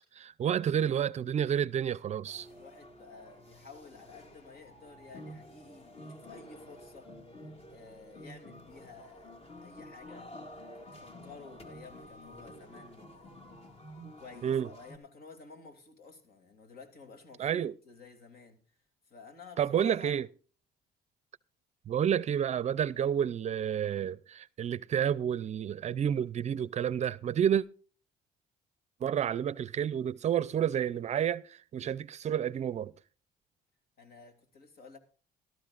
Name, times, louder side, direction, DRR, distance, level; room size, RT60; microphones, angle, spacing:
voice 1, 0.2-2.5 14.0-14.1 14.4-14.7 17.4-17.7 19.6-20.3 21.9-27.6 29.0-32.9, right 9 dB, 40° right, 0.5 m, -30 dB
sound 1, 2.3-15.0, left 1 dB, 35° left, 2.2 m, -50 dB
voice 2, 2.5-7.1 7.7-10.4 10.7-13.3 14.2-18.6 19.1-20.2 34.0-35.0, left 4 dB, 65° left, 2.9 m, -52 dB
17.5 x 13.0 x 2.5 m
cardioid pair, 110°, 17 cm